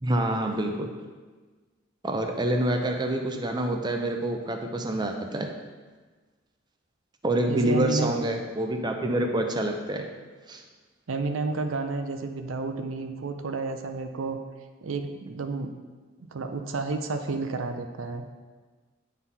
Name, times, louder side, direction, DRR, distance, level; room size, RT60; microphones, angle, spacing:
voice 1, 0.0-0.9 2.0-5.5 7.2-10.1 10.5-10.6, right 1 dB, 20° right, 4 dB, 0.5 m, -27 dB
voice 2, 7.5-8.2 11.1-14.4 14.8-15.7 16.3-18.2, right 3 dB, 85° right, 7 dB, 0.6 m, -31 dB
9.0 x 4.0 x 4.1 m, 1.3 s
head